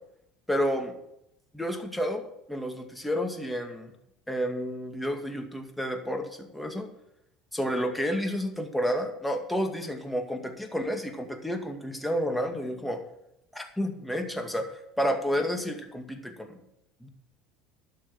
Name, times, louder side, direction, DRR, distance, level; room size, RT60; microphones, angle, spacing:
voice 1, 0.5-0.9 1.5-2.2 2.5-3.9 4.3-6.9 7.5-13.0 13.5-14.7 15.0-16.6 17.0-17.1, equal, 5° left, 4 dB, 2.2 m, -30 dB
12.0 x 6.6 x 7.5 m, 0.80 s
hypercardioid pair, 80°, 0 cm